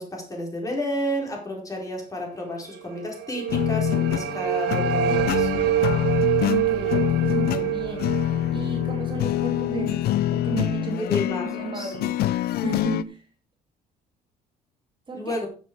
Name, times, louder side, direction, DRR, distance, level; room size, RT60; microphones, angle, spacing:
voice 1, 0.0-5.5 10.8-11.9 15.1-15.5, left 1 dB, 20° left, 0 dB, 4.5 m, -31 dB
sound 1, 2.9-9.9, right 11 dB, 75° right, 1.5 m, -26 dB
sound 2, 3.5-13.0, left 13 dB, 70° left, 0.6 m, -25 dB
voice 2, 6.4-8.1 8.5-12.2 12.6-13.3 15.1-15.4, right 4 dB, 30° right, 2 dB, 2.8 m, -33 dB
12.5 x 7.5 x 4.7 m, 0.39 s
cardioid pair, 110°, 17 cm